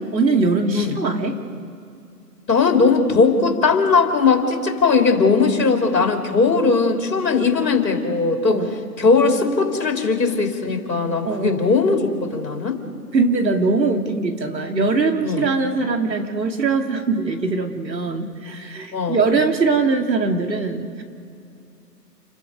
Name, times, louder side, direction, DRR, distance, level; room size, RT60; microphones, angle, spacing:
voice 1, 0.1-1.4 8.5-8.7 11.2-11.7 13.1-21.0, right 3 dB, 85° right, 4 dB, 2.6 m, -21 dB
voice 2, 2.5-8.6 9.0-12.8 15.2-15.4 18.9-19.2, left 4 dB, 80° left, 3 dB, 3.4 m, -19 dB
29.0 x 22.5 x 5.3 m, 2.6 s
hypercardioid pair, 145°, 50 cm